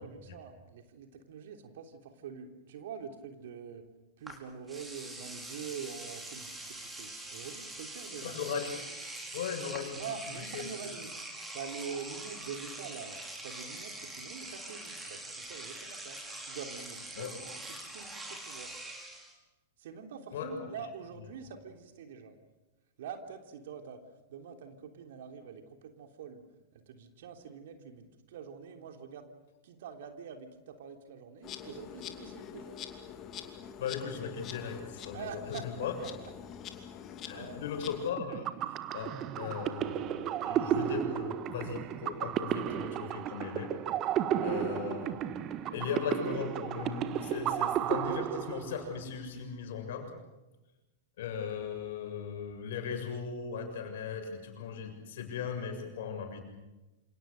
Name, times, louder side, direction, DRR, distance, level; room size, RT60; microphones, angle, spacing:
voice 1, 0.0-3.9 4.2-8.4 9.9-11.1 11.5-13.2 13.4-18.7 19.8-22.3 23.0-24.0 24.3-26.4 26.7-29.2 29.6-32.8 35.1-35.6 37.1-37.6 44.3-44.6, right 6 dB, 60° right, 5 dB, 3.3 m, -45 dB
Engine / Domestic sounds home sounds, 4.3-4.4 4.7-19.3, right 2 dB, 10° right, 5.5 m, -44 dB
voice 2, 8.2-8.8 9.3-10.0 10.5-10.7 17.2-17.3 20.3-20.5 33.8-35.9 37.2-43.7 44.4-45.1 45.7-50.1 51.2-56.4, left 7 dB, 60° left, 4 dB, 7.1 m, -38 dB
Insect, 31.4-38.1, left 9 dB, 30° left, 2.7 m, -45 dB
sound 1, 38.2-49.0, right 10 dB, 35° right, 1.4 m, -33 dB
28.5 x 27.5 x 6.6 m, 1.0 s
figure-of-eight pair, 95°, 0 cm